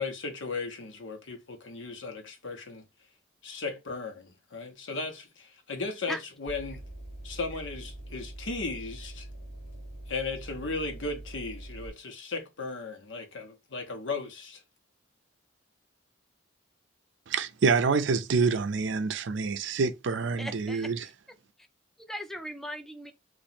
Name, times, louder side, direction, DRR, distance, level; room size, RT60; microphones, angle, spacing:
voice 1, 0.0-2.8 3.4-6.8 7.2-9.3 10.1-14.6, left 3 dB, 85° left, 1.0 m, -36 dB
sound 1, 6.5-11.9, right 1 dB, 40° left, 1.4 m, -43 dB
voice 2, 17.3-21.0, right 4 dB, 70° right, 0.5 m, -26 dB
voice 3, 20.4-21.1 22.0-23.1, equal, ahead, 0.5 m, -38 dB
2.9 x 2.5 x 4.1 m
head